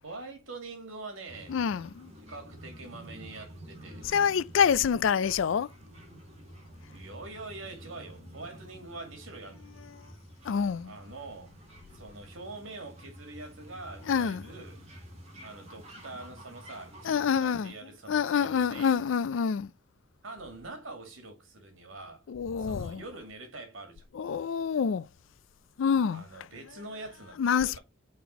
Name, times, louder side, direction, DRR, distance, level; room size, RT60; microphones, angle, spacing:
voice 1, 0.0-1.6 2.2-4.1 6.9-9.7 10.8-11.6 11.9-14.8 15.4-19.0 20.2-22.2 22.6-24.0 26.1-27.8, right 2 dB, 75° right, 2.1 m, -44 dB
sound 1, 1.3-17.4, equal, 30° right, 2.2 m, -49 dB
voice 2, 1.5-2.1 4.1-5.7 10.4-10.9 14.1-14.4 17.0-17.7 18.1-19.7 22.3-23.0 24.1-25.1 25.8-26.2 27.4-27.8, left 7 dB, 65° left, 0.4 m, -26 dB
5.8 x 4.4 x 4.2 m
head